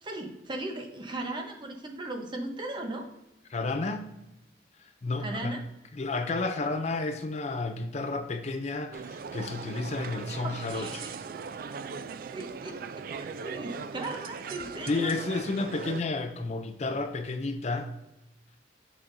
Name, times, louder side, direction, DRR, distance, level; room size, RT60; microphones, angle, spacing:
voice 1, 0.0-3.1 5.2-5.6 10.2-11.2 12.3-15.1, right 2 dB, 25° right, 3 dB, 0.8 m, -37 dB
voice 2, 3.5-4.1 4.8-5.6 5.9-11.1 14.9-17.9, left 3 dB, 35° left, 8 dB, 0.4 m, -31 dB
sound 1, 8.9-16.0, right 5 dB, 50° right, 0.3 m, -39 dB
7.2 x 6.2 x 2.6 m, 0.90 s
head